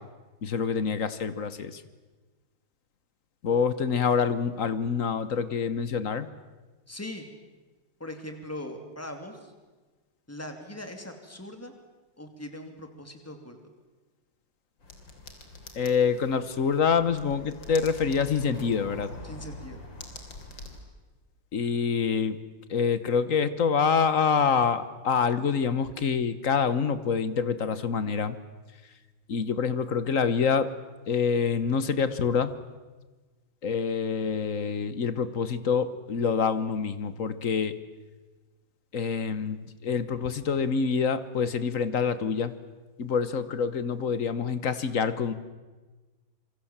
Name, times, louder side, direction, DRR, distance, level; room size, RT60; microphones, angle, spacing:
voice 1, 0.4-1.8 3.4-6.3 15.7-19.1 21.5-22.4 22.7-28.4 29.3-30.7 31.1-32.5 33.6-37.7 38.9-42.5 43.0-45.3, left 6 dB, 45° left, 13 dB, 1.4 m, -26 dB
voice 2, 6.9-7.3 8.0-9.5 10.3-11.7 12.2-13.6 19.2-19.8, left 1 dB, 5° left, 5 dB, 2.9 m, -40 dB
sound 1, 14.8-20.8, left 2 dB, 70° left, 3.9 m, -44 dB
27.0 x 24.0 x 7.4 m, 1.3 s
omnidirectional pair, 2.1 m